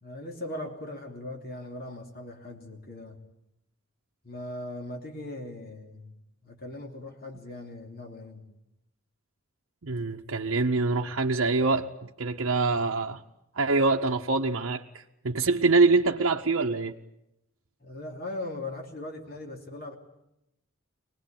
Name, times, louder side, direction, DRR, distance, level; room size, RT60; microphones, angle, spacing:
voice 1, 0.0-3.2 4.2-6.1 6.4-8.4 17.8-20.0, left 1 dB, 45° left, 3.0 m, -39 dB
voice 2, 9.8-13.2 13.5-16.9, right 3 dB, 65° right, 0.9 m, -25 dB
23.5 x 19.5 x 8.9 m
head